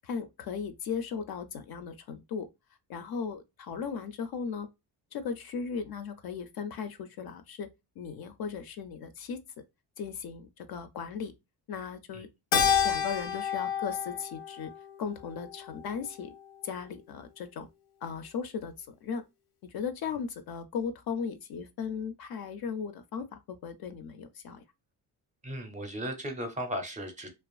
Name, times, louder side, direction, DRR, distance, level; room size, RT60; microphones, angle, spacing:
voice 1, 0.0-2.5 2.9-4.7 5.1-7.7 8.0-9.4 10.0-11.3 11.7-12.3 12.5-14.7 15.0-16.4 16.6-17.7 18.0-19.2 19.7-24.6, left 6 dB, 60° left, 0.5 m, -37 dB
Keyboard (musical), 12.5-17.1, left 8 dB, 85° left, 0.8 m, -31 dB
voice 2, 25.4-27.3, equal, 20° right, 0.5 m, -36 dB
2.5 x 2.4 x 2.3 m
cardioid pair, 125°, 42 cm